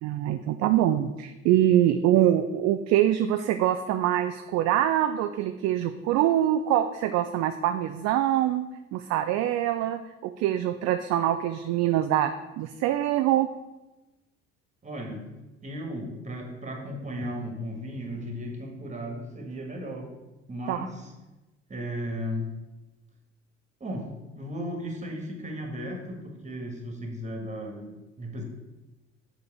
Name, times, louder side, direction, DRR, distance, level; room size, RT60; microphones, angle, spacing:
voice 1, 0.0-8.6 8.9-12.3 12.6-13.5 20.7-20.8, right 12 dB, 50° right, 9 dB, 0.4 m, -24 dB
voice 2, 14.8-15.3 15.6-20.1 20.5-21.1 21.7-22.5 23.8-28.4, equal, 20° right, 2 dB, 1.7 m, -35 dB
7.0 x 3.9 x 4.8 m, 1.1 s
hypercardioid pair, 55°, 34 cm